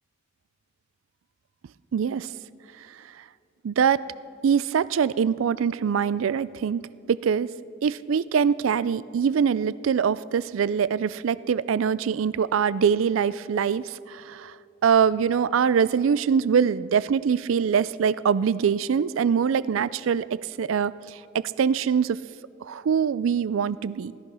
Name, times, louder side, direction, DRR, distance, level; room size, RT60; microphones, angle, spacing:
voice 1, 1.9-2.3 3.6-4.0 4.4-6.8 7.1-7.5 7.8-14.5 14.8-22.2 22.6-24.1, right 7 dB, 85° right, 18 dB, 0.4 m, -23 dB
17.0 x 13.0 x 5.6 m, 2.6 s
head